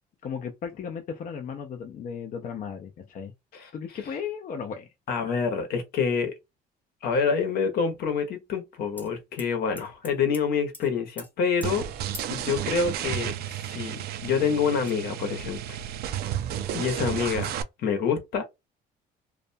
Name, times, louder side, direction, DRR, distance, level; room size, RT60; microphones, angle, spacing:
voice 1, 0.2-3.3 3.7-4.9, left 7 dB, 50° left, 0.5 m, -35 dB
voice 2, 5.1-6.3 7.0-11.8 12.3-15.6 16.7-18.4, left 6 dB, 70° left, 1.0 m, -27 dB
sound 1, 9.0-9.1 9.4-10.4 10.7-10.9 11.2-11.3 11.6-11.7 12.1-12.4 13.3-13.4 13.7-14.4 14.8-14.9, left 2 dB, 10° left, 0.8 m, -44 dB
sound 2, 11.6-17.6, right 11 dB, 70° right, 0.4 m, -32 dB
2.4 x 2.2 x 2.6 m
cardioid pair, 110°, 17 cm